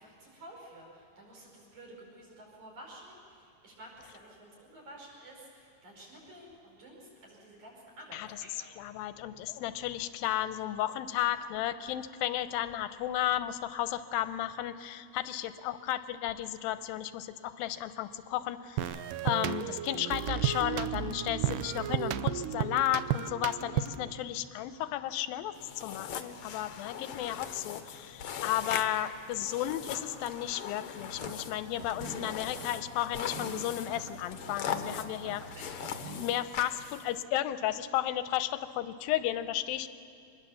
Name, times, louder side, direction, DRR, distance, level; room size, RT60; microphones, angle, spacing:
voice 1, 0.0-8.7 35.5-35.7 36.8-37.0, right 1 dB, 55° right, -2 dB, 6.3 m, -51 dB
voice 2, 8.8-35.4 36.1-39.9, left 13 dB, 90° left, 12 dB, 2.5 m, -33 dB
sound 1, 18.8-24.1, right 10 dB, 80° right, 2.1 m, -33 dB
sound 2, 25.5-37.2, left 8 dB, 65° left, 1.4 m, -41 dB
sound 3, 31.0-36.2, right 2 dB, 40° right, 1.8 m, -46 dB
25.0 x 20.5 x 7.1 m, 2.5 s
omnidirectional pair, 4.1 m